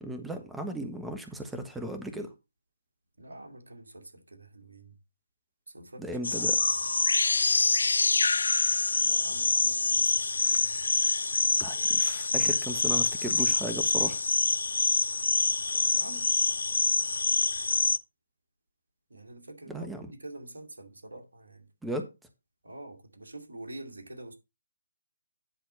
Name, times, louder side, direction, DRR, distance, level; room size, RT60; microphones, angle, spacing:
voice 1, 0.0-2.3 6.0-6.6 11.6-14.2 19.7-20.1 21.8-22.1, right 1 dB, 5° right, 1.2 m, -36 dB
voice 2, 3.2-5.0 5.7-6.1 9.0-10.7 15.7-16.3 19.1-19.9 20.1-21.7 22.6-24.3, right 1 dB, 70° right, 2.5 m, -46 dB
sound 1, 6.2-18.0, left 3 dB, 70° left, 0.5 m, -26 dB
10.0 x 4.3 x 5.4 m
figure-of-eight pair, 140°, 0 cm